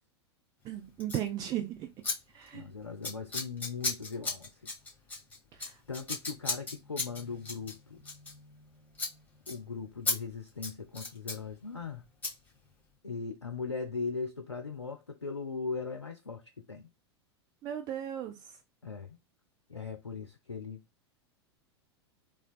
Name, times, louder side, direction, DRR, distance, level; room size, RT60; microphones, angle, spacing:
voice 1, 0.6-1.9 2.3-2.7 5.6-5.7 17.6-18.3, right 11 dB, 25° right, 0.4 m, -36 dB
Scissors, 1.0-1.3 2.0-2.2 2.4-2.7 3.0-8.7 8.9-9.1 9.5-9.6 10.1-10.2 10.5-11.4 12.2-12.3, left 3 dB, 10° left, 1.3 m, -35 dB
voice 2, 2.5-4.7 5.9-8.0 9.5-12.0 13.0-16.9 18.8-19.2 19.7-20.8, left 5 dB, 90° left, 0.4 m, -39 dB
3.3 x 2.3 x 2.2 m
figure-of-eight pair, 90°, 14 cm